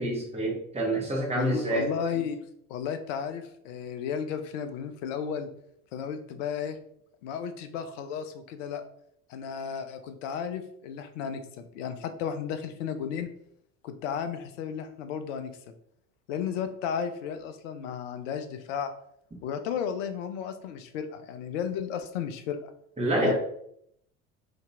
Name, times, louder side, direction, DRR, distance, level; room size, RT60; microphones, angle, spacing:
voice 1, 0.0-1.9 23.0-23.3, right 1 dB, 15° right, -3 dB, 1.2 m, -27 dB
voice 2, 1.3-2.4 2.7-5.5 5.9-6.8 7.2-8.8 9.3-13.3 13.8-15.7 16.3-18.9 19.4-22.7 23.2-23.3, left 7 dB, 55° left, 8 dB, 0.6 m, -34 dB
2.8 x 2.8 x 3.4 m, 0.71 s
figure-of-eight pair, 65°, 44 cm